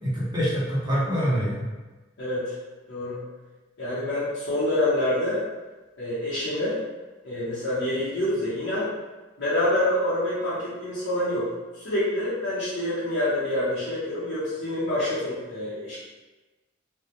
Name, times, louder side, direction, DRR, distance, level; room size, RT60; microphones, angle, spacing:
voice 1, 0.0-1.7, equal, 20° right, -7 dB, 0.7 m, -25 dB
voice 2, 2.2-2.5 2.9-3.2 3.8-5.4 6.0-6.8 7.2-8.9 9.4-11.5 11.7-16.0, left 1 dB, 70° left, -11 dB, 0.8 m, -26 dB
2.1 x 2.1 x 2.8 m, 1.2 s
head